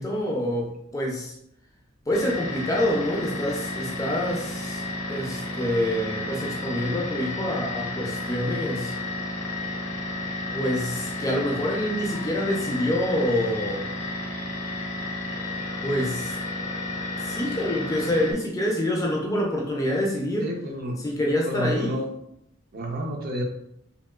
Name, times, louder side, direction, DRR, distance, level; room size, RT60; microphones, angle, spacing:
voice 1, 0.0-1.3 2.1-4.8 5.1-8.9 10.5-13.9 15.8-16.4 17.2-20.5 21.0-22.0, left 1 dB, 15° left, -1 dB, 0.4 m, -26 dB
sound 1, 2.1-18.3, left 2 dB, 60° left, 0.6 m, -32 dB
voice 2, 20.4-21.0 21.5-22.1 22.7-23.4, equal, 45° right, 1 dB, 0.5 m, -29 dB
3.0 x 2.8 x 2.2 m, 0.77 s
head